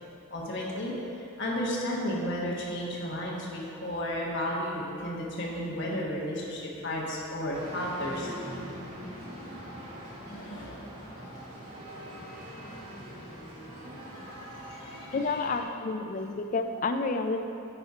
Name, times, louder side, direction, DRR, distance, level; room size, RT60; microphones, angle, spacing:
voice 1, 0.3-0.9 1.4-8.3 10.3-10.8 14.7-15.2, equal, 55° left, -4 dB, 1.4 m, -33 dB
sound 1, 7.5-15.6, equal, 35° right, 1.9 m, -42 dB
voice 2, 15.1-17.4, left 3 dB, 40° left, 6 dB, 0.4 m, -30 dB
8.7 x 4.3 x 4.8 m, 2.7 s
head